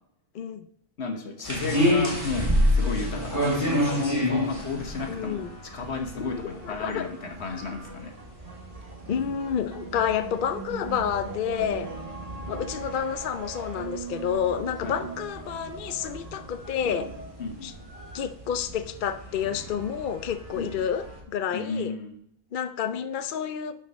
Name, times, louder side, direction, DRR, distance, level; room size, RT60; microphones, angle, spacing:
voice 1, 0.3-0.7 2.8-2.9 5.1-5.6 6.6-7.1 7.5-7.6 9.1-11.9 12.5-17.1 17.6-17.7 18.1-21.9 22.5-23.8, left 8 dB, 60° left, 9 dB, 0.6 m, -29 dB
voice 2, 1.0-8.1 14.8-15.0 17.4-17.7 20.5-20.7 21.5-22.1, left 3 dB, 80° left, 4 dB, 1.5 m, -32 dB
sound 1, 1.4-21.2, equal, 15° right, 2.7 m, -31 dB
sound 2, 2.1-18.2, right 4 dB, 35° right, 1.2 m, -42 dB
12.0 x 4.9 x 4.1 m, 0.73 s
omnidirectional pair, 1.1 m